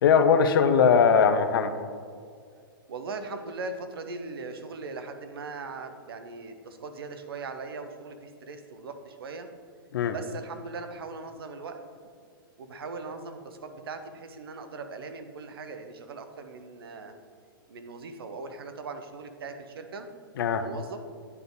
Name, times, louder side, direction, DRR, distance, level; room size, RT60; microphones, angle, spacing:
voice 1, 0.0-1.7 9.9-10.1 20.4-20.6, left 6 dB, 70° left, 9 dB, 0.6 m, -20 dB
voice 2, 2.9-9.5 10.1-11.8 12.6-17.1 17.7-20.1 20.5-21.0, right 3 dB, 80° right, 7 dB, 0.8 m, -39 dB
9.4 x 3.5 x 3.9 m, 2.1 s
hypercardioid pair, 135°, 12 cm